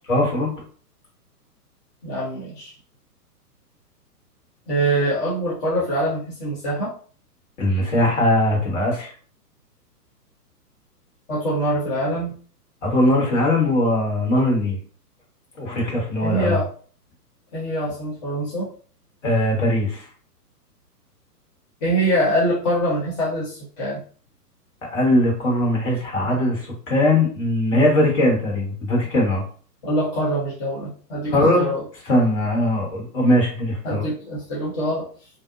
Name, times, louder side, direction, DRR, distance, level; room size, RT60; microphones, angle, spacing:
voice 1, 0.1-0.5 7.6-9.1 12.8-14.8 15.6-16.6 19.2-20.0 24.9-29.4 31.3-31.7 32.1-34.1, left 1 dB, 50° left, -2 dB, 1.4 m, -20 dB
voice 2, 2.0-2.7 4.7-6.9 11.3-12.3 16.2-16.7 17.5-18.7 21.8-24.0 29.8-31.8 33.8-35.1, right 1 dB, 25° left, -7 dB, 0.6 m, -24 dB
2.6 x 2.1 x 2.4 m, 0.43 s
figure-of-eight pair, 115°, 48 cm